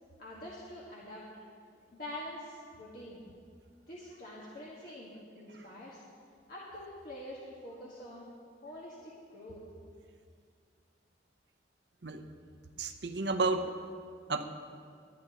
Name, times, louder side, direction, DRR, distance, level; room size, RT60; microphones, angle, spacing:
voice 1, 0.2-1.2 1.9-3.2 3.9-6.0 6.5-8.2 8.6-9.6, left 1 dB, 55° left, -6 dB, 1.7 m, -45 dB
voice 2, 12.8-13.7 14.3-14.5, right 3 dB, 70° right, 7 dB, 0.8 m, -32 dB
23.0 x 9.6 x 3.0 m, 2.2 s
head